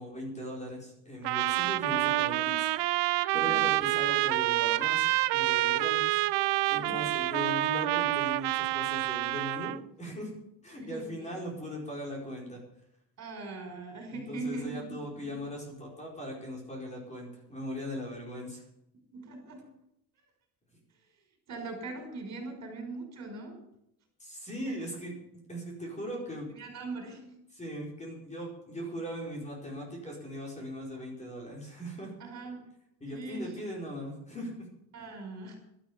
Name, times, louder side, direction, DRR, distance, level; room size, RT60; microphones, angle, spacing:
voice 1, 0.0-2.7 3.3-10.3 10.6-12.6 14.1-18.6 24.2-25.1 25.5-26.5 27.5-32.1 33.0-34.7, equal, 15° left, -1 dB, 4.7 m, -39 dB
Trumpet, 1.2-9.8, right 17 dB, 80° right, 0.7 m, -28 dB
voice 2, 6.6-7.0 10.8-11.4 13.2-15.4 19.1-19.7 21.5-23.6 24.7-24.9 26.5-27.4 32.2-32.7 33.1-33.5 34.9-35.6, right 3 dB, 40° right, 4 dB, 5.4 m, -41 dB
12.5 x 12.5 x 7.0 m, 0.77 s
cardioid pair, 170°, 41 cm